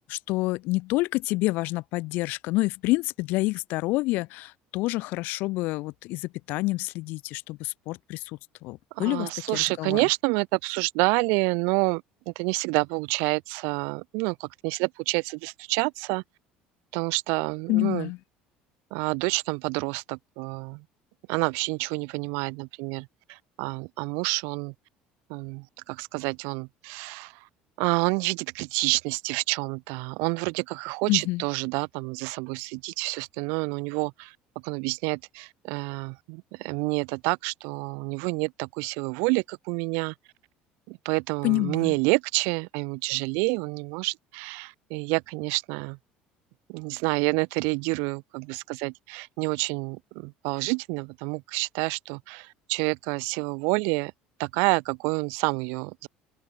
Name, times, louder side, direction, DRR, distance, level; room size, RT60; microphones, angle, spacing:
voice 1, 0.1-10.1 17.7-18.2 31.1-31.4 41.4-41.9, left 21 dB, 55° left, 0.4 m, -28 dB
voice 2, 9.0-16.2 16.9-18.1 18.9-20.8 21.3-24.7 25.3-27.3 27.8-34.3 34.6-40.1 40.9-46.0 46.7-54.1 54.4-56.1, right 34 dB, 75° right, 1.0 m, -28 dB
open air
cardioid pair, 175°, 4 cm